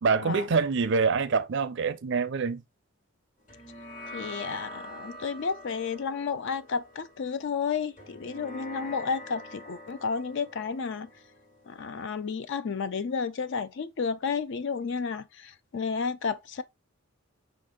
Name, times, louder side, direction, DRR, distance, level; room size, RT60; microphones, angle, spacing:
voice 1, 0.0-2.6, right 5 dB, 55° right, 0.4 m, -25 dB
sound 1, 3.5-12.2, left 1 dB, 35° left, 1.1 m, -45 dB
voice 2, 4.1-11.1 11.7-16.6, left 5 dB, 55° left, 0.4 m, -32 dB
5.6 x 2.6 x 3.4 m
head